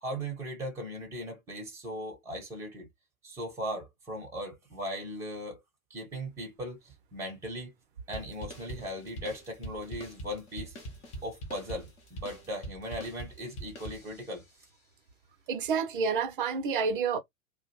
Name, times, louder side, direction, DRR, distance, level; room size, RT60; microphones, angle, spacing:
voice 1, 0.0-2.9 3.2-5.6 5.9-7.7 8.1-10.8 11.2-14.4, equal, 5° right, 0.8 m, -38 dB
sound 1, 8.1-14.5, right 1 dB, 15° left, 0.6 m, -43 dB
voice 2, 15.5-17.2, right 5 dB, 40° right, 0.6 m, -29 dB
2.4 x 2.1 x 2.9 m
figure-of-eight pair, 105°, 41 cm